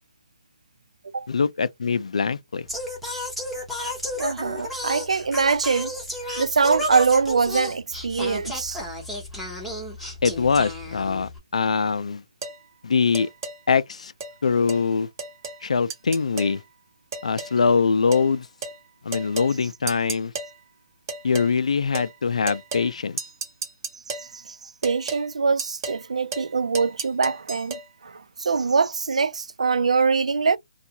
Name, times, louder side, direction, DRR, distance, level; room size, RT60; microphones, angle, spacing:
voice 1, 1.3-2.7 10.2-12.2 12.8-13.3 13.7-14.1 14.4-15.1 15.6-16.6 17.2-18.5 19.0-20.3 21.2-23.2, left 5 dB, 80° left, 0.4 m, -23 dB
Singing, 2.7-11.4, left 1 dB, ahead, 0.7 m, -33 dB
voice 2, 4.2-5.9 6.4-8.8 24.1-30.6, right 5 dB, 90° right, 0.3 m, -23 dB
sound 1, 12.4-12.6 13.1-13.6 14.2-14.3 14.7-14.8 15.2-15.6 15.9-16.6 17.1-17.6 18.1-18.3 18.6-18.8 19.1-19.5 19.9-20.5 21.1-21.5 21.9-22.1 22.5-22.9 23.2-24.3 24.8-25.2 25.6-26.0 26.3-26.5 26.7-27.8, right 4 dB, 35° right, 1.0 m, -33 dB
2.7 x 2.3 x 2.7 m
hypercardioid pair, 160°, 3 cm